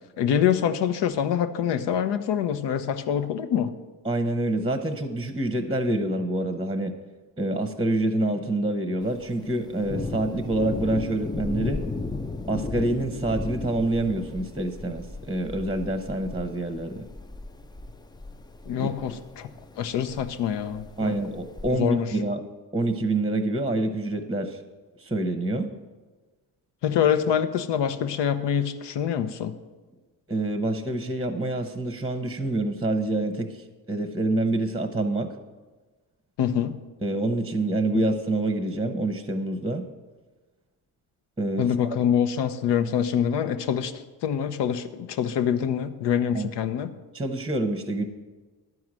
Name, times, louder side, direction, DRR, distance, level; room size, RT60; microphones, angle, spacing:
voice 1, 0.2-3.7 18.7-19.5 19.8-21.1 21.7-22.1 26.8-29.5 36.4-36.8 37.9-38.0 41.6-46.9, left 9 dB, 65° left, 10 dB, 0.8 m, -25 dB
voice 2, 4.0-6.9 7.4-11.8 12.5-17.1 18.8-18.9 21.0-22.4 22.7-24.6 25.0-25.7 30.3-35.3 37.0-39.8 41.4-41.7 46.3-46.5 47.1-48.0, right 2 dB, 10° right, 7 dB, 0.9 m, -27 dB
Thunder, 9.0-21.7, left 3 dB, 10° left, 0.4 m, -36 dB
11.0 x 4.7 x 7.5 m, 1.3 s
supercardioid pair, 70°, 46 cm